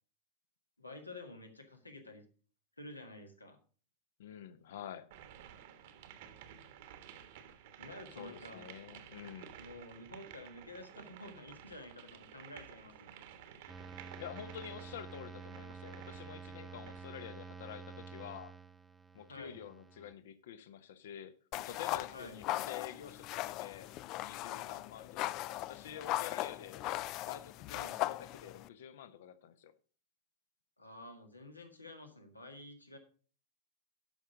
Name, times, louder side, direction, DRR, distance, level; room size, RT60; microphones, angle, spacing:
voice 1, 0.8-2.2 2.8-3.6 7.8-8.7 9.5-13.2 19.3-19.6 22.1-22.4 27.7-28.0 30.8-33.0, left 2 dB, 80° left, 1.6 m, -50 dB
voice 2, 4.2-5.1 8.1-9.6 14.2-18.5 19.1-23.9 24.2-26.9 27.3-29.7, left 9 dB, 60° left, 0.8 m, -48 dB
sound 1, 5.1-17.2, right 9 dB, 55° right, 1.2 m, -54 dB
sound 2, 13.7-20.1, right 5 dB, 5° right, 0.8 m, -49 dB
sound 3, 21.5-28.7, left 16 dB, 40° left, 0.3 m, -39 dB
11.5 x 5.7 x 5.0 m
figure-of-eight pair, 90°, 0 cm